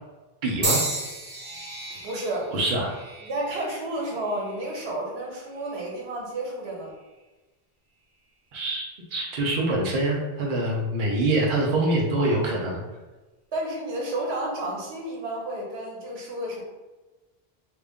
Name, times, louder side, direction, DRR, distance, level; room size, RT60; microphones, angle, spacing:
voice 1, 0.4-0.8 2.5-2.9 8.5-8.9 9.1-12.8, right 2 dB, 60° right, -2 dB, 0.8 m, -24 dB
sound 1, 0.6-4.8 5.5-5.9 6.9-7.0, right 2 dB, 40° right, 0.3 m, -33 dB
voice 2, 1.9-2.5 3.2-6.9 13.5-16.6, right 1 dB, 90° right, -2 dB, 1.1 m, -31 dB
3.0 x 2.4 x 3.5 m, 1.1 s
omnidirectional pair, 1.0 m